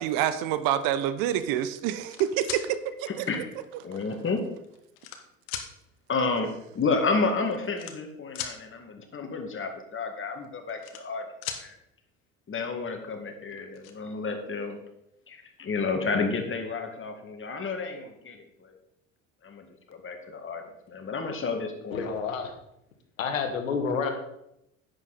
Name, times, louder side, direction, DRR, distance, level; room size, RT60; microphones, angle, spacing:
voice 1, 0.0-3.2, right 11 dB, 60° right, 12 dB, 0.9 m, -27 dB
sound 1, 1.9-2.6 3.6-3.7 4.5-5.2 5.5-5.7 6.8-6.9 7.1-7.3 7.7-8.6 10.4-11.2 11.4-11.6 13.1-13.2 13.5-13.9, left 9 dB, 60° left, 1.5 m, -37 dB
voice 2, 3.1-3.5 3.8-4.4 6.1-6.5 6.7-11.2 11.6-11.8 12.5-14.8 15.3-18.7 19.4-22.1, left 4 dB, 30° left, 4 dB, 2.2 m, -31 dB
voice 3, 21.9-22.5 23.2-24.1, left 5 dB, 85° left, 6 dB, 1.7 m, -29 dB
10.5 x 8.6 x 4.2 m, 0.80 s
hypercardioid pair, 70°, 39 cm